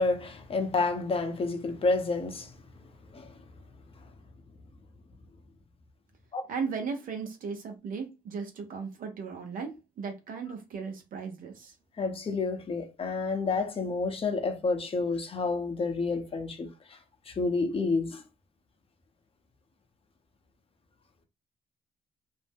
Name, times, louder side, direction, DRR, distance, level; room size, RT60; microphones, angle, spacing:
voice 1, 0.0-2.5 3.1-3.3 6.3-6.4 12.0-16.7 17.3-18.2, left 3 dB, 40° left, 0.8 m, -29 dB
voice 2, 6.5-11.7, right 5 dB, 70° right, 0.8 m, -36 dB
2.6 x 2.1 x 3.4 m
cardioid pair, 85°, 15 cm